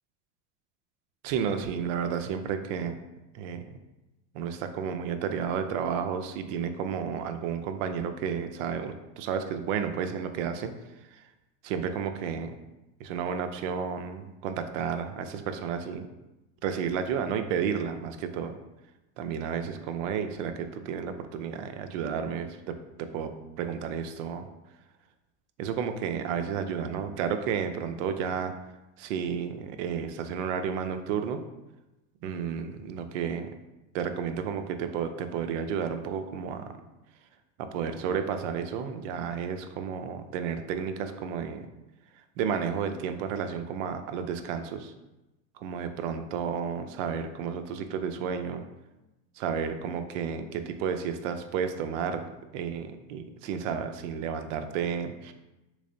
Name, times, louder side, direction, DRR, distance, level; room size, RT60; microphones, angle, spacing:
voice 1, 1.2-3.0 3.3-3.8 4.3-10.7 11.1-11.2 11.6-12.5 13.0-16.1 16.6-18.6 19.2-24.5 25.6-28.5 29.0-31.4 32.2-33.5 33.9-36.7 37.6-41.7 42.4-44.9 45.6-48.6 49.4-52.3 52.5-55.3, right 7 dB, 85° right, 8 dB, 0.5 m, -32 dB
3.5 x 3.2 x 2.6 m, 1.0 s
supercardioid pair, 130°, 36 cm